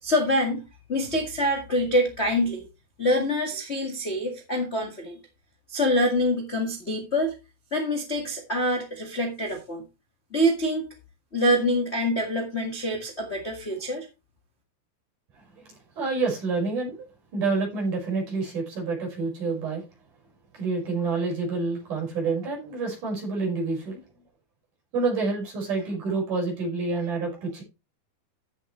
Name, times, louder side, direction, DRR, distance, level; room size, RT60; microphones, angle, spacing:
voice 1, 0.0-0.6 0.9-2.6 3.0-5.2 5.7-7.4 7.7-9.8 10.3-10.9 11.3-14.1, equal, 30° left, 2 dB, 1.2 m, -25 dB
voice 2, 15.7-17.0 17.3-19.8 20.5-24.0 24.9-27.6, right 4 dB, 55° right, -2 dB, 6.8 m, -28 dB
14.5 x 7.5 x 3.2 m, 0.27 s
omnidirectional pair, 4.4 m